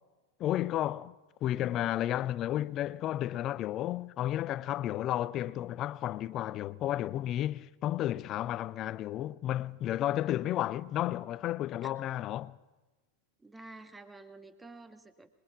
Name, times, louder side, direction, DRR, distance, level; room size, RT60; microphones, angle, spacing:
voice 1, 0.4-1.1 1.4-12.6, left 13 dB, 35° left, 0.7 m, -32 dB
voice 2, 13.4-15.3, right 2 dB, 10° right, 1.9 m, -50 dB
26.0 x 22.0 x 6.1 m
figure-of-eight pair, 90°, 0 cm